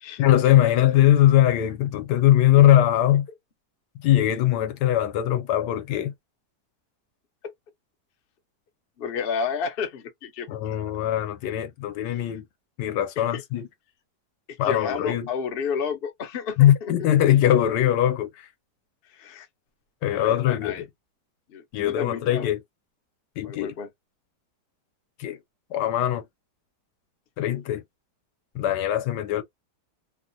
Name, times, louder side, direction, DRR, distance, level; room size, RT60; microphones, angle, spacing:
voice 1, 0.2-3.3 4.0-6.1 10.5-12.4 12.8-13.6 14.6-15.3 16.6-18.3 20.0-20.8 21.7-22.6 23.4-23.7 25.2-25.4 25.7-26.2 27.4-27.8 28.5-29.4, left 12 dB, 80° left, 1.2 m, -21 dB
voice 2, 9.0-10.6 13.2-13.4 14.6-16.9 19.1-19.5 20.0-20.8 21.5-22.5 23.4-23.9, left 6 dB, 55° left, 0.6 m, -31 dB
3.1 x 2.1 x 2.6 m
omnidirectional pair, 1.8 m